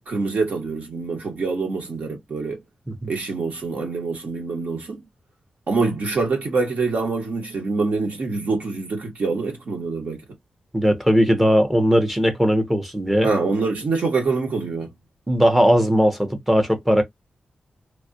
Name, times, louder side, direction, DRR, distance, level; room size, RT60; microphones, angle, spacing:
voice 1, 0.1-2.6 3.1-5.0 5.7-10.2 13.2-14.9, right 4 dB, 65° right, 1.2 m, -25 dB
voice 2, 10.7-13.3 15.3-17.0, equal, 5° right, 0.7 m, -18 dB
3.4 x 2.3 x 2.6 m
wide cardioid pair, 140°, 3 cm